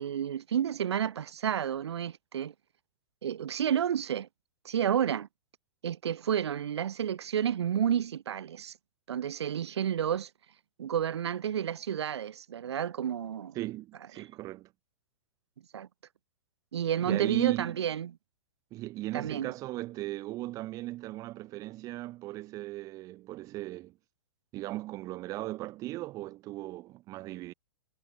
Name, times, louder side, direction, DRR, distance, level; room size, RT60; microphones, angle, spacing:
voice 1, 0.0-2.5 3.2-4.3 4.6-5.3 5.8-8.7 9.1-10.3 10.8-13.6 14.2-14.3 15.7-15.9 16.7-18.1 19.1-19.5, right 9 dB, 65° right, 1.0 m, -30 dB
voice 2, 13.5-14.7 17.0-17.8 18.7-24.0 24.5-27.5, right 17 dB, 25° right, 0.4 m, -37 dB
figure-of-eight pair, 110°, 15 cm